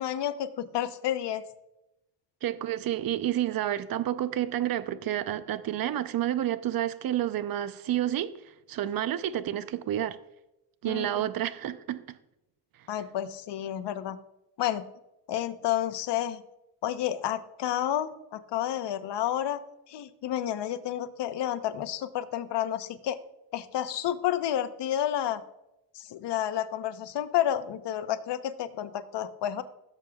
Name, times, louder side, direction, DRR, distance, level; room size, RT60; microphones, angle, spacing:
voice 1, 0.0-1.4 10.8-11.2 12.9-14.2 14.6-14.8 15.3-16.4 16.8-19.6 19.9-23.2 23.5-25.4 25.9-29.6, left 11 dB, 60° left, 0.9 m, -30 dB
voice 2, 2.4-8.3 8.7-10.2 10.8-12.2, right 12 dB, 45° right, 0.7 m, -29 dB
16.5 x 7.2 x 2.3 m
cardioid pair, 100°, 48 cm